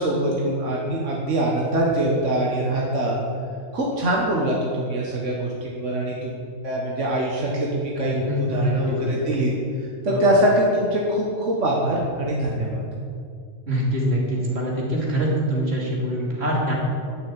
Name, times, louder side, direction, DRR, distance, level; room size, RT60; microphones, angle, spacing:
voice 1, 0.0-3.2 3.7-6.4 6.6-8.2 8.5-9.5 10.0-12.8, right 1 dB, 90° right, -3 dB, 1.8 m, -23 dB
voice 2, 8.3-9.4 10.1-10.3 12.4-12.5 13.7-16.7, equal, 60° right, -4 dB, 3.0 m, -24 dB
10.5 x 6.3 x 9.0 m, 2.4 s
omnidirectional pair, 1.2 m